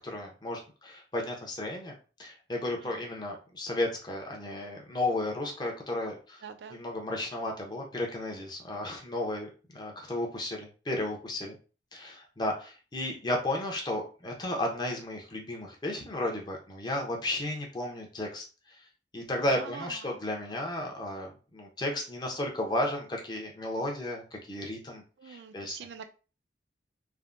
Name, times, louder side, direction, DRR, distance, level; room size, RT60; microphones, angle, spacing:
voice 1, 0.0-1.9 2.2-6.4 6.7-11.5 11.9-18.8 19.1-25.8, left 1 dB, 25° left, 1 dB, 0.6 m, -34 dB
voice 2, 6.4-6.8 19.5-20.2 25.2-26.0, right 6 dB, 75° right, 7 dB, 0.4 m, -44 dB
3.3 x 2.1 x 2.4 m, 0.35 s
head